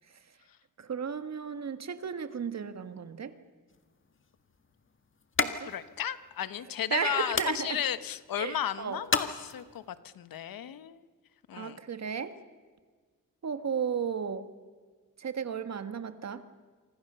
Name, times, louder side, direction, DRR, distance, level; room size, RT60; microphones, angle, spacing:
voice 1, 0.8-3.3 5.4-5.7 6.9-7.8 8.4-9.0 11.5-12.4 13.4-14.5 15.2-16.4, right 6 dB, 50° right, 10 dB, 1.8 m, -34 dB
sound 1, 3.7-10.0, left 4 dB, 35° left, 1.7 m, -37 dB
voice 2, 5.6-9.8 10.1-11.0 11.5-11.8, left 10 dB, 85° left, 13 dB, 1.3 m, -34 dB
27.5 x 25.0 x 7.0 m, 1.5 s
wide cardioid pair, 120°, 34 cm